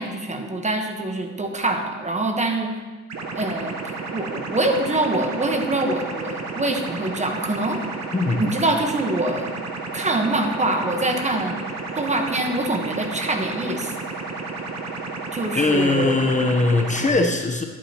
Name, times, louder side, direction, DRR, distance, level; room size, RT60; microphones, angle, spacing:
voice 1, 0.0-2.8 3.3-3.8 4.1-7.8 8.4-9.5 9.9-11.6 12.0-13.9 15.3-16.3, right 2 dB, 25° right, 4 dB, 1.1 m, -24 dB
sound 1, 3.1-17.1, right 3 dB, 60° right, 1.1 m, -32 dB
voice 2, 15.5-17.6, left 2 dB, 25° left, 3 dB, 0.8 m, -20 dB
11.0 x 8.5 x 2.9 m, 1.3 s
cardioid pair, 90°, 30 cm